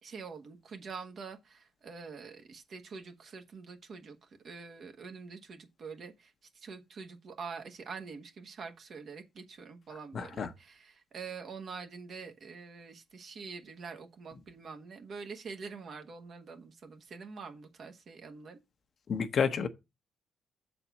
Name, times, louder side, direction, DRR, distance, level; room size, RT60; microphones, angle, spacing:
voice 1, 0.0-18.6, right 5 dB, 55° right, 1.3 m, -45 dB
voice 2, 10.1-10.5 19.1-19.7, left 6 dB, 55° left, 0.8 m, -30 dB
6.8 x 4.2 x 6.0 m
cardioid pair, 90°, 0 cm